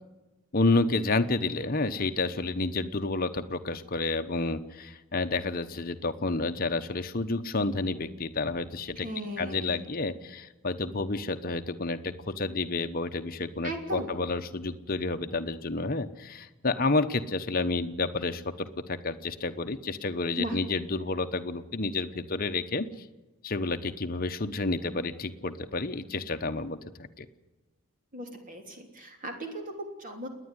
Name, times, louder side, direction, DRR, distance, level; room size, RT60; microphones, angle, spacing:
voice 1, 0.5-9.1 9.4-23.0 23.4-26.8 27.2-27.3, left 3 dB, 40° left, 7 dB, 1.0 m, -30 dB
voice 2, 9.0-9.7 13.6-14.2 20.4-20.6 28.1-30.3, right 1 dB, 35° right, 3 dB, 3.2 m, -37 dB
28.5 x 10.0 x 9.9 m, 1.1 s
head